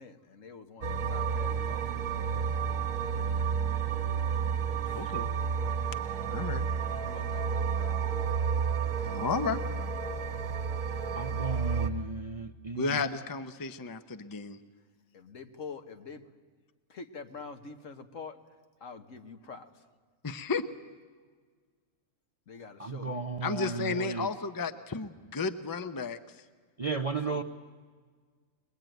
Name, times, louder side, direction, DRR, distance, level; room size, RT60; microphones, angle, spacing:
voice 1, 0.0-2.0 2.3-2.5 4.8-5.1 7.0-8.4 9.0-9.1 15.1-16.2 16.9-18.4 18.8-19.7 22.5-23.2 27.2-27.4, left 5 dB, 65° left, 6 dB, 1.7 m, -46 dB
sound 1, 0.8-11.9, right 6 dB, 70° right, 1.7 m, -31 dB
voice 2, 4.9-5.3 6.3-6.7 9.1-9.6 12.7-14.6 20.2-20.6 23.4-26.2, left 4 dB, 20° left, 10 dB, 0.7 m, -33 dB
voice 3, 11.1-13.1 22.8-24.3 26.8-27.4, right 4 dB, 35° right, 6 dB, 0.6 m, -34 dB
23.5 x 21.0 x 9.2 m, 1.6 s
omnidirectional pair, 1.4 m